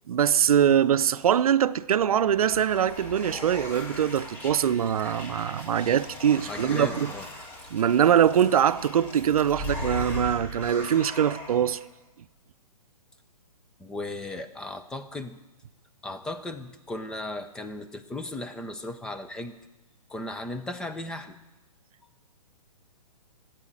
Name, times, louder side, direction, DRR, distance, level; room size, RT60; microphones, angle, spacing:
voice 1, 0.1-7.1 7.7-11.8, right 9 dB, 65° right, 0.6 m, -23 dB
sound 1, 1.8-11.8, left 1 dB, 35° left, 4.1 m, -39 dB
voice 2, 6.5-7.3 13.8-15.4 16.0-19.6 20.1-21.4, left 2 dB, 5° left, 0.4 m, -36 dB
14.5 x 9.1 x 8.6 m
hypercardioid pair, 145°, 20 cm